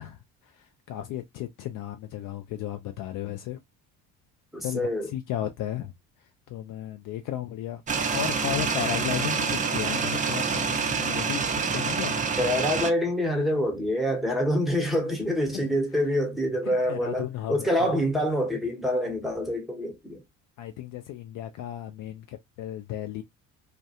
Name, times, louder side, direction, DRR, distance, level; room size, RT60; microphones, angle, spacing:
voice 1, 0.0-3.6 4.6-5.9 6.5-7.8 8.1-12.2 15.5-15.8 16.6-17.9 20.6-23.2, left 11 dB, 50° left, 0.5 m, -34 dB
voice 2, 4.5-5.1 12.4-20.2, equal, ahead, 0.9 m, -26 dB
sound 1, 7.9-12.9, right 5 dB, 20° right, 0.4 m, -27 dB
2.2 x 2.2 x 2.8 m
hypercardioid pair, 55°, 43 cm